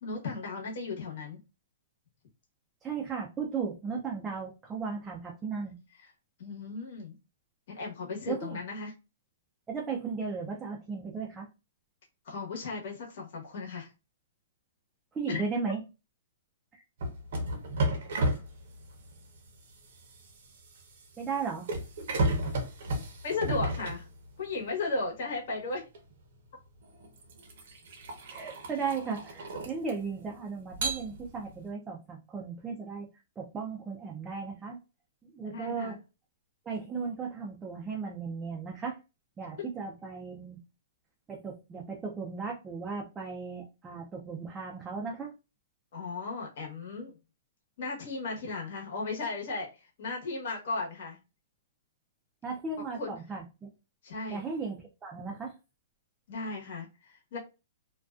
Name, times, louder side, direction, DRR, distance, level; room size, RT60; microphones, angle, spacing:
voice 1, 0.0-1.4 6.0-6.1 6.4-7.1 7.7-8.9 12.2-13.9 15.3-15.4 23.2-24.1 24.4-25.9 35.5-36.0 45.9-47.1 47.8-51.2 52.9-53.2 54.0-54.4 56.3-57.4, left 3 dB, 60° left, -1 dB, 1.0 m, -36 dB
voice 2, 2.8-5.8 8.3-8.6 9.7-11.5 15.1-15.8 16.7-16.8 21.2-21.7 28.3-33.1 33.4-34.8 35.2-36.0 36.7-39.0 39.4-40.6 41.3-45.3 52.4-53.7 54.3-55.5, right 5 dB, 15° right, -1 dB, 0.4 m, -36 dB
sound 1, 17.0-24.6 25.9-26.1 26.8-30.2 30.7-31.6, right 1 dB, 60° right, 0.7 m, -33 dB
2.4 x 2.2 x 2.3 m, 0.28 s
hypercardioid pair, 155°, 0 cm